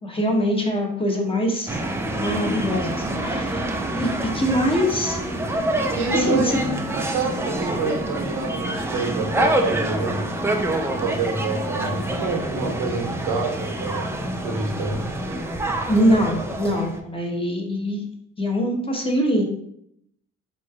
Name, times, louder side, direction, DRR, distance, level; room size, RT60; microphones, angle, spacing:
voice 1, 0.0-1.8 2.2-3.6 3.9-5.2 6.1-6.6 15.9-18.0 18.4-19.4, equal, 20° left, 0 dB, 0.8 m, -23 dB
sound 1, 1.7-17.0, right 1 dB, 10° right, 0.3 m, -27 dB
voice 2, 5.9-10.2 10.8-14.0 14.3-15.0, right 3 dB, 85° right, 0 dB, 1.0 m, -27 dB
3.9 x 3.1 x 2.3 m, 0.72 s
cardioid pair, 90°, 30 cm